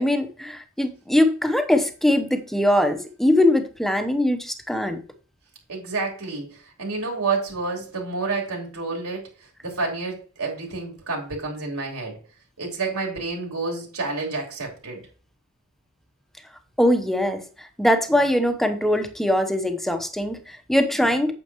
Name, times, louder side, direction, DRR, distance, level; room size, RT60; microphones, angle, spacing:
voice 1, 0.0-5.0 16.8-21.3, left 1 dB, ahead, 7 dB, 0.9 m, -22 dB
voice 2, 5.7-9.3 9.6-12.2 12.6-15.0, right 3 dB, 90° right, 0 dB, 4.1 m, -29 dB
8.8 x 7.7 x 3.1 m, 0.37 s
head